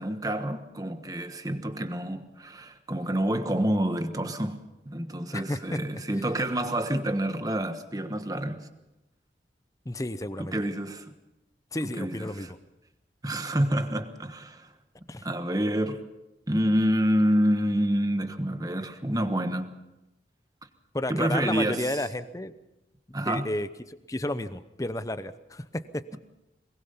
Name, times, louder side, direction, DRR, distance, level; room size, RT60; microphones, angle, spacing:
voice 1, 0.0-8.7 10.4-11.2 11.8-12.5 13.2-14.7 15.2-16.0 16.5-19.7 21.1-22.0 23.1-23.5, right 1 dB, 20° right, 1.2 m, -28 dB
voice 2, 9.9-10.6 11.7-12.5 15.1-15.2 20.9-22.5 23.1-26.0, left 1 dB, 20° left, 0.7 m, -32 dB
22.0 x 21.5 x 5.6 m
head